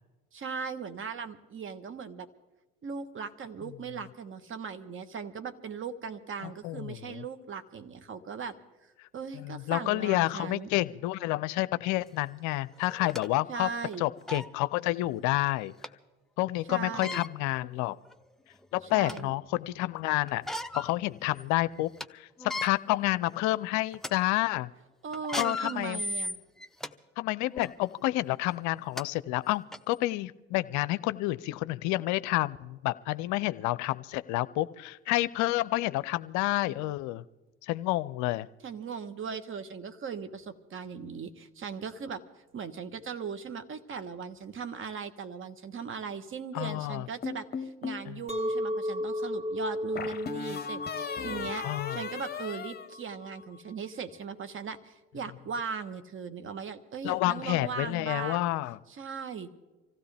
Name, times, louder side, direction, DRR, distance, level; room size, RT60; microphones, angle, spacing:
voice 1, 0.3-2.3 2.8-8.5 9.1-10.7 13.5-14.1 16.7-17.2 18.9-19.4 25.0-26.4 38.6-42.2 42.5-51.6 51.9-58.5 58.9-59.5, right 6 dB, 40° right, 10 dB, 1.3 m, -38 dB
voice 2, 6.4-7.2 9.3-13.7 14.0-15.7 16.4-18.0 18.7-20.4 20.7-22.3 22.6-24.7 25.3-26.0 27.2-37.2 37.6-38.5 46.5-47.1 48.1-48.2 51.6-52.0 57.0-58.8, left 18 dB, 60° left, 16 dB, 0.6 m, -29 dB
sound 1, 12.1-12.2 12.8-13.3 13.9-14.0 14.3-14.5 15.8-15.9 16.9-17.3 18.1-18.2 18.6-19.3 20.3-20.9 21.3-21.4 21.8-22.1 22.4-22.7 23.3-23.5 23.9-24.1 25.1-26.9 27.5-27.7 28.6-28.7 29.0-29.1 29.7-29.8, left 1 dB, ahead, 0.6 m, -36 dB
sound 2, 47.2-48.1 50.0-53.6, left 6 dB, 30° left, 1.2 m, -37 dB
Chink clink, 48.3-53.5, left 1 dB, 20° right, 2.7 m, -35 dB
25.5 x 15.5 x 3.5 m, 1.2 s
hypercardioid pair, 70°, 33 cm